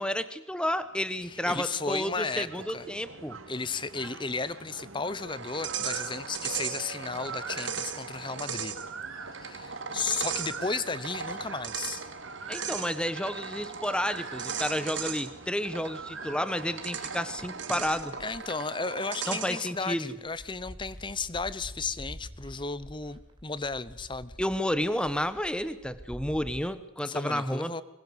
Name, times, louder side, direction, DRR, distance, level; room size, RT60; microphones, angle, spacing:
voice 1, 0.0-3.4 12.5-18.2 19.3-20.2 24.4-27.8, left 1 dB, 5° left, 13 dB, 1.2 m, -31 dB
sound 1, 0.8-19.2, right 4 dB, 85° right, 3.1 m, -45 dB
voice 2, 1.2-2.5 2.7-2.9 3.5-8.7 9.3-12.0 18.2-24.3 27.0-27.8, left 4 dB, 25° left, 17 dB, 0.9 m, -34 dB
sound 2, 5.3-19.8, right 7 dB, 60° right, 2.3 m, -37 dB
sound 3, 17.4-18.6 19.3-19.4 19.7-26.6, equal, 25° right, 2.5 m, -47 dB
25.0 x 22.0 x 8.1 m, 0.91 s
head